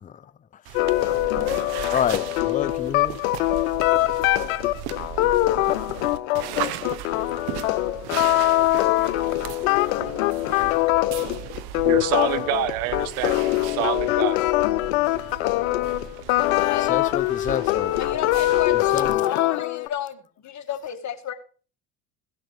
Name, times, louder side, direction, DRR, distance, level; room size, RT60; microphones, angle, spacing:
voice 1, 0.0-0.8 1.9-3.2 9.4-9.5 16.8-18.0 18.9-19.2, left 9 dB, 20° left, 0.5 m, -29 dB
sound 1, 0.6-19.1, right 11 dB, 70° right, 1.1 m, -37 dB
sound 2, 0.7-19.9, left 17 dB, 85° left, 0.8 m, -23 dB
voice 2, 11.8-14.4, right 14 dB, 85° right, 1.2 m, -27 dB
voice 3, 16.5-16.9 17.9-21.3, left 10 dB, 45° left, 2.1 m, -32 dB
16.5 x 6.6 x 4.9 m
supercardioid pair, 85°, 40 cm